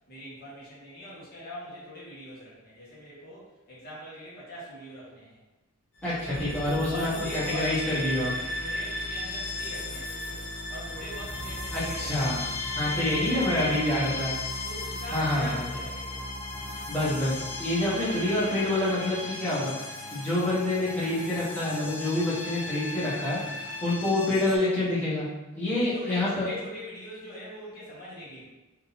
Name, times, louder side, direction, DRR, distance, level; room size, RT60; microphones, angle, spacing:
voice 1, 0.1-5.4 6.2-6.4 6.9-12.5 12.8-14.2 14.6-16.2 25.7-28.4, equal, 45° left, -7 dB, 1.3 m, -42 dB
sound 1, 6.0-24.6, left 2 dB, 65° left, 0.7 m, -35 dB
voice 2, 6.0-8.3 11.7-12.4 12.7-14.4 15.1-15.6 16.9-25.3 25.5-26.5, left 1 dB, 5° left, -11 dB, 1.2 m, -27 dB
sound 2, 6.3-8.0, right 1 dB, 60° right, 0.7 m, -41 dB
3.8 x 2.8 x 4.1 m, 1.1 s
head